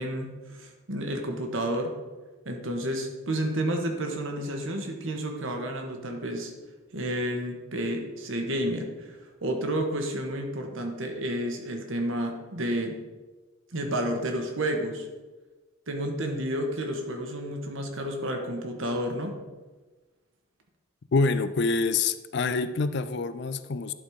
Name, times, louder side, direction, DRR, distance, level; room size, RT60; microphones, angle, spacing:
voice 1, 0.0-2.0 2.4-6.5 6.9-13.0 13.7-15.1 15.9-19.4, right 1 dB, 65° right, 3 dB, 1.3 m, -31 dB
voice 2, 21.1-23.9, left 4 dB, 50° left, 13 dB, 0.4 m, -26 dB
11.5 x 4.2 x 4.8 m, 1.2 s
head